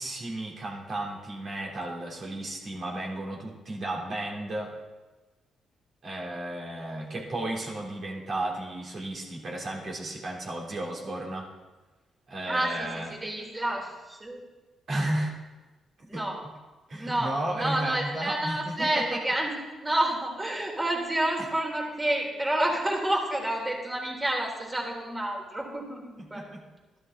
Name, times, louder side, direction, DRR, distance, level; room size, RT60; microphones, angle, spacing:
voice 1, 0.0-4.8 6.0-11.5 12.3-13.1 14.9-15.3 16.1-16.3 16.9-19.2 21.4-21.5 26.3-26.6, right 1 dB, 55° right, -2 dB, 3.8 m, -33 dB
voice 2, 12.5-14.4 16.1-16.4 17.0-26.5, right 1 dB, 20° right, -1 dB, 4.1 m, -29 dB
13.5 x 12.5 x 4.2 m, 1.2 s
supercardioid pair, 65°, 0 cm